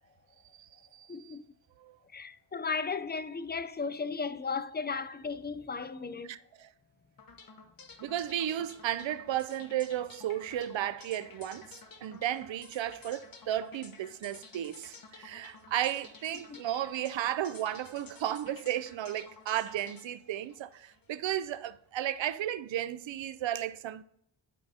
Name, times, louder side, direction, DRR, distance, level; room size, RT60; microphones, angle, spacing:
voice 1, 0.5-1.4 1.8-2.0 6.2-6.7 8.0-11.7 12.0-24.0, right 12 dB, 80° right, 0.5 m, -34 dB
voice 2, 1.1-1.4 2.1-6.3 16.5-16.6, left 5 dB, 25° left, 0.5 m, -35 dB
sound 1, 7.2-21.3, left 4 dB, 50° left, 1.1 m, -53 dB
10.5 x 4.6 x 2.8 m
cardioid pair, 50°, 45 cm